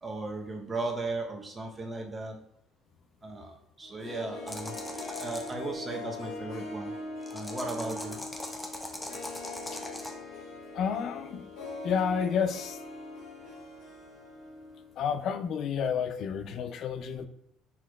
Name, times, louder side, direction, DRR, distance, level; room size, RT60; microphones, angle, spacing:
voice 1, 0.0-2.4 3.2-4.8 5.1-6.9 7.3-8.2, right 2 dB, 25° right, 2 dB, 0.9 m, -36 dB
Harp, 3.8-14.9 15.1-15.2, left 2 dB, 85° left, 1.3 m, -41 dB
sound 1, 4.5-5.5 7.2-10.1, left 1 dB, 10° left, 0.8 m, -40 dB
voice 2, 10.7-11.4 11.8-12.8 15.0-17.3, left 7 dB, 60° left, 9 dB, 0.4 m, -30 dB
5.6 x 3.1 x 2.3 m, 0.73 s
supercardioid pair, 75°, 0 cm